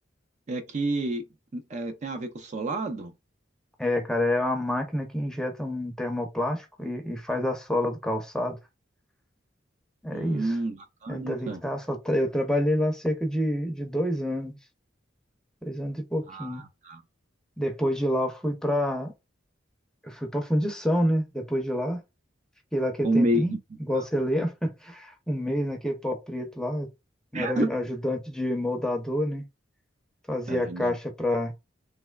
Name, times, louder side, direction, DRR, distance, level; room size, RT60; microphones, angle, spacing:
voice 1, 0.5-1.2 1.5-3.1 10.1-11.6 16.3-17.0 23.0-23.6 23.9-24.0 27.3-27.7 30.5-30.9, right 1 dB, 40° right, 0.4 m, -29 dB
voice 2, 3.8-8.6 10.0-10.6 11.1-14.6 15.6-16.6 17.6-19.1 20.0-22.0 22.7-26.9 27.3-29.4 30.3-31.5, left 1 dB, 5° left, 0.6 m, -28 dB
3.4 x 2.9 x 2.2 m
head